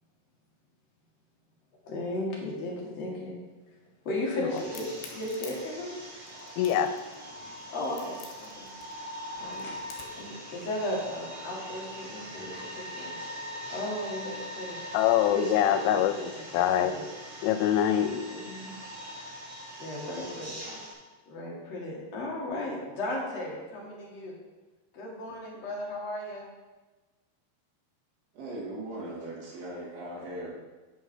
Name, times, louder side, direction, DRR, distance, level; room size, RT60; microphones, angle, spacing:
voice 1, 1.8-3.4 4.0-5.9 7.7-8.2 8.5-8.7 9.4-9.7 10.2-13.2 13.7-14.8 15.3-17.2 18.3-18.7 19.8-20.6 21.3-24.4 24.9-26.5, left 1 dB, 50° left, -3 dB, 2.1 m, -35 dB
sound 1, 4.5-20.9, equal, 45° right, 3.6 m, -42 dB
Crack, 4.6-10.3, left 7 dB, 70° left, 3.1 m, -49 dB
voice 2, 6.6-6.9 14.9-16.9 17.4-18.2, left 10 dB, 90° left, 10 dB, 3.1 m, -24 dB
voice 3, 28.3-30.6, right 1 dB, 75° right, -6 dB, 5.1 m, -39 dB
9.2 x 5.8 x 6.1 m, 1.2 s
omnidirectional pair, 5.4 m